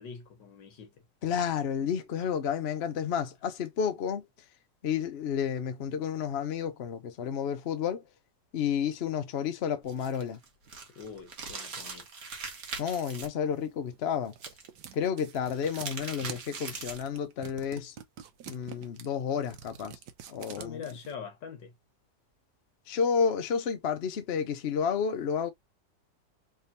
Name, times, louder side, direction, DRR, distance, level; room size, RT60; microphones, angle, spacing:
voice 1, 0.0-1.0 10.9-12.1 20.6-21.7, left 6 dB, 75° left, 1.7 m, -43 dB
voice 2, 1.2-4.3 4.8-8.0 8.5-10.4 12.8-14.3 14.9-18.0 18.5-20.0 20.3-20.8 22.9-25.5, left 7 dB, 60° left, 0.7 m, -31 dB
sound 1, 9.8-13.3 14.3-14.9 15.4-17.1, right 4 dB, 45° right, 1.2 m, -41 dB
sound 2, 13.9-21.1, right 9 dB, 70° right, 1.2 m, -47 dB
3.7 x 3.4 x 2.6 m
omnidirectional pair, 2.0 m